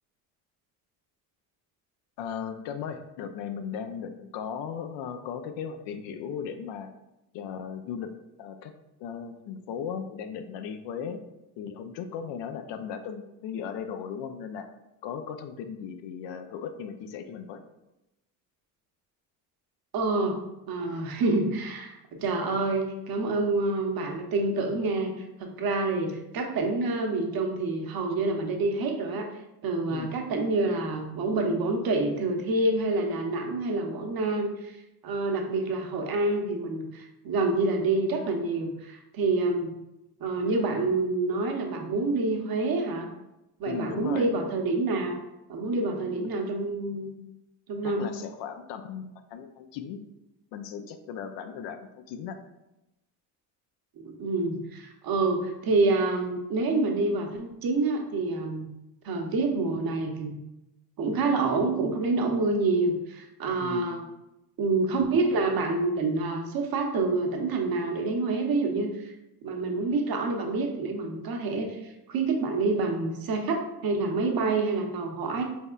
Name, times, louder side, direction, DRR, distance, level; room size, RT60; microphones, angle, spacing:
voice 1, 2.2-6.9 7.3-8.1 8.4-8.7 9.0-11.2 11.6-14.7 15.0-17.6 29.9-30.1 43.6-44.3 47.8-50.0 50.5-52.4 63.6-63.9, left 7 dB, 60° left, 8 dB, 0.5 m, -37 dB
voice 2, 19.9-20.4 20.7-29.3 29.6-34.8 35.0-39.7 40.2-43.1 43.6-45.2 45.5-47.1 47.7-48.2 54.0-58.7 59.0-60.3 61.0-64.0 64.6-69.1 69.4-75.4, right 3 dB, 45° right, 2 dB, 0.8 m, -27 dB
4.1 x 3.5 x 2.3 m, 0.93 s
hypercardioid pair, 70°, 49 cm